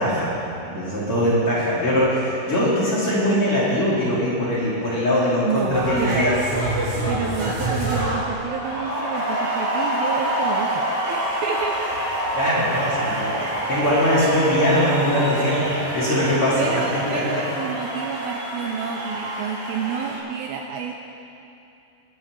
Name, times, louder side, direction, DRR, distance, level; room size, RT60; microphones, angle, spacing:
voice 1, 0.0-6.4 12.3-17.3, equal, 40° left, -8 dB, 2.7 m, -21 dB
voice 2, 5.4-6.3 7.1-11.9 16.6-20.9, right 7 dB, 80° right, 2 dB, 2.2 m, -29 dB
sound 1, 5.7-20.2, right 1 dB, 60° right, 4.4 m, -26 dB
22.0 x 9.6 x 3.1 m, 2.7 s
omnidirectional pair, 4.7 m